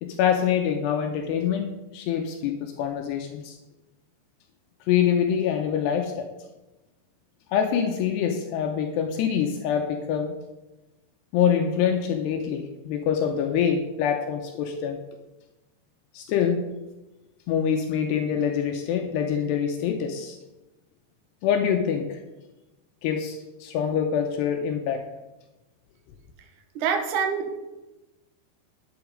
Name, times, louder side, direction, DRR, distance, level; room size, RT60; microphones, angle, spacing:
voice 1, 0.0-3.6 4.9-6.3 7.5-10.3 11.3-15.0 16.1-16.7 17.5-20.4 21.4-22.2 23.0-25.0, left 8 dB, 80° left, 4 dB, 2.8 m, -25 dB
voice 2, 26.8-27.6, right 6 dB, 60° right, 4 dB, 2.4 m, -26 dB
11.0 x 8.1 x 5.1 m, 1.0 s
omnidirectional pair, 5.1 m